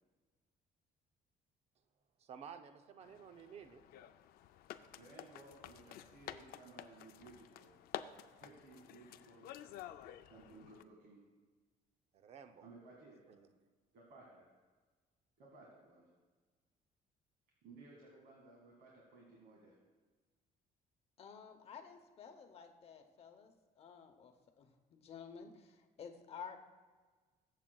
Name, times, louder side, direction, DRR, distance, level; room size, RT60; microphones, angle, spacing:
voice 1, 2.3-3.8 12.1-12.7 13.4-13.5, right 7 dB, 45° right, 8 dB, 0.6 m, -53 dB
sound 1, 3.0-10.8, left 11 dB, 85° left, 0.5 m, -51 dB
voice 2, 5.0-7.8 8.4-9.5 10.3-11.2 12.6-13.4 13.9-14.5 15.4-16.1 17.6-19.7, right 3 dB, 70° right, -3 dB, 2.0 m, -58 dB
voice 3, 21.2-26.6, left 6 dB, 40° left, 5 dB, 0.9 m, -53 dB
22.0 x 7.4 x 2.3 m, 1.4 s
cardioid pair, 175°, 15 cm